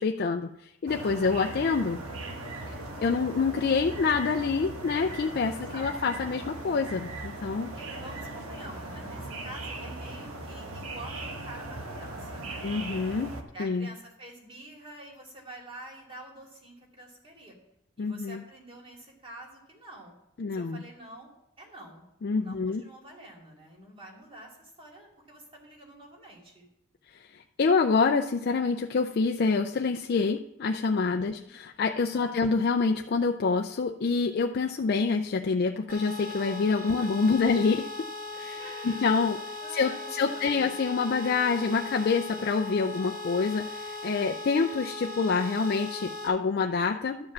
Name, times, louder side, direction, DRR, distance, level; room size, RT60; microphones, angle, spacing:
voice 1, 0.0-2.0 2.7-2.8 3.0-7.7 12.6-13.3 13.6-13.9 18.0-18.4 20.4-20.8 22.2-22.8 27.1-37.9 38.4-39.4 39.7-47.3, left 4 dB, 45° left, 4 dB, 0.4 m, -27 dB
sound 1, 0.9-13.4, right 2 dB, 85° right, 1.3 m, -39 dB
voice 2, 1.0-1.5 5.5-5.9 7.7-12.7 13.5-17.6 18.0-20.1 20.5-21.3 21.6-22.1 22.3-26.7 31.2-31.5 32.1-32.6 38.3-39.2 39.6-40.7, right 1 dB, 25° right, 0 dB, 2.3 m, -47 dB
sound 2, 35.9-46.3, left 2 dB, 65° right, 2.4 m, -38 dB
12.0 x 4.9 x 7.3 m, 0.84 s
head